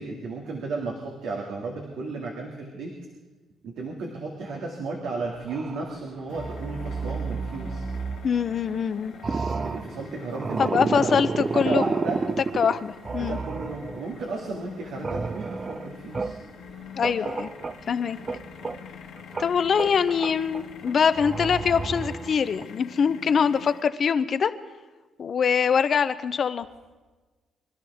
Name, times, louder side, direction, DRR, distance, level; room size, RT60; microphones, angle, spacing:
voice 1, 0.0-2.9 3.6-7.9 9.6-12.2 13.2-16.4, right 3 dB, 80° right, -1 dB, 2.2 m, -33 dB
sound 1, 5.4-6.0 6.3-8.9 9.1-14.3 14.6-17.9 18.2-22.6, right 4 dB, 30° right, 0.4 m, -31 dB
sound 2, 6.3-23.8, left 8 dB, 85° left, 1.3 m, -46 dB
voice 2, 8.2-9.5 10.6-11.8 12.6-13.4 17.0-17.5 17.9-18.2 19.4-24.5 25.2-26.7, left 6 dB, 50° left, 12 dB, 0.7 m, -24 dB
25.0 x 13.0 x 3.6 m, 1.3 s
cardioid pair, 90°, 0 cm